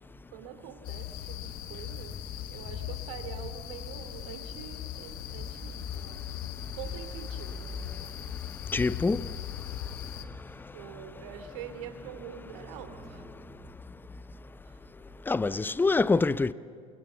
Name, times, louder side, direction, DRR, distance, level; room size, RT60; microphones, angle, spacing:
voice 1, 0.3-2.2 2.5-6.2 6.7-8.1 10.5-13.2 14.7-14.8, right 9 dB, 65° right, 2.8 m, -45 dB
sound 1, 0.8-10.2, left 11 dB, 55° left, 1.8 m, -39 dB
voice 2, 8.7-9.2 15.3-16.5, left 3 dB, 10° left, 0.6 m, -25 dB
28.0 x 25.5 x 8.1 m
figure-of-eight pair, 70°, 18 cm